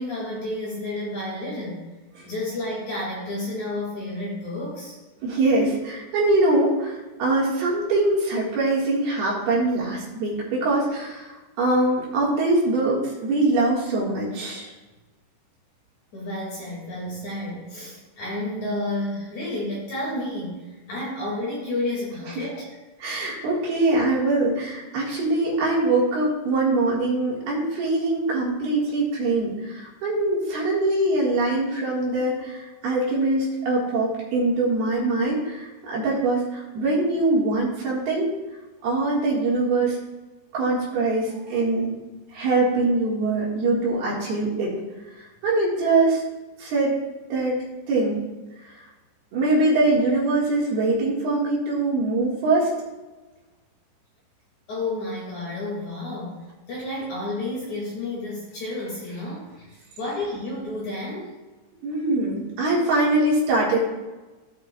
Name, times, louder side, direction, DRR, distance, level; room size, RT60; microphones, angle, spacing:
voice 1, 0.0-1.9 2.2-5.0 16.1-22.7 54.7-59.7 60.0-61.3, left 1 dB, 45° left, -5 dB, 3.1 m, -31 dB
voice 2, 5.2-14.7 22.4-22.5 23.0-38.3 38.8-40.0 40.5-41.9 42.3-44.7 45.2-46.2 46.6-47.0 47.3-47.6 47.9-48.2 48.6-48.7 49.3-52.7 61.8-63.8, right 2 dB, 65° right, -5 dB, 3.5 m, -23 dB
17.0 x 5.8 x 2.3 m, 1.2 s
omnidirectional pair, 5.1 m